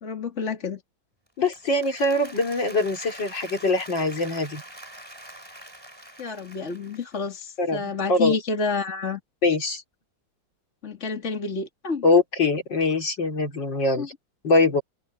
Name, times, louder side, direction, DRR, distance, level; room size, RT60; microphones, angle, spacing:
voice 1, 0.0-0.8 6.2-9.2 10.8-12.0 14.0-14.1, left 5 dB, 35° left, 2.9 m, -29 dB
Applause, 1.3-7.5, right 1 dB, 10° right, 4.8 m, -44 dB
voice 2, 1.4-4.6 7.6-8.4 9.4-9.8 12.0-14.1 14.4-14.8, left 2 dB, 70° left, 4.3 m, -23 dB
open air
omnidirectional pair, 2.0 m